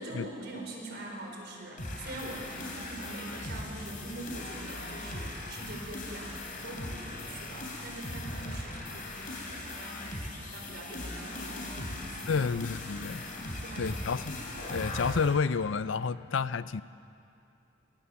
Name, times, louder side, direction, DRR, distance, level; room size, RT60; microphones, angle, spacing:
voice 1, 0.0-12.5 13.0-14.3, right 1 dB, 60° right, 1 dB, 4.6 m, -44 dB
sound 1, 1.8-15.3, left 1 dB, 45° left, 3.5 m, -39 dB
voice 2, 12.3-13.3 13.8-14.4 14.7-16.8, left 5 dB, 80° left, 16 dB, 0.5 m, -30 dB
22.5 x 19.0 x 7.1 m, 2.6 s
head